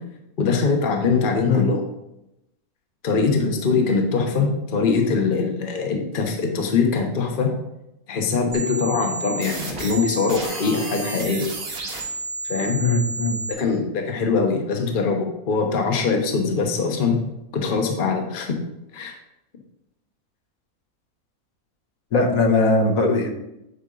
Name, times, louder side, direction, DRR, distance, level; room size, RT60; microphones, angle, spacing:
voice 1, 0.4-1.8 3.0-7.6 8.1-11.5 12.4-12.8 13.5-17.2 17.5-18.6 18.9-19.1, left 4 dB, 40° left, 2 dB, 1.0 m, -22 dB
sound 1, 8.5-13.5, right 3 dB, 75° right, 2.0 m, -31 dB
voice 2, 12.8-13.4 22.1-23.3, left 3 dB, 70° left, 1 dB, 1.4 m, -19 dB
9.3 x 4.4 x 3.8 m, 0.88 s
omnidirectional pair, 1.5 m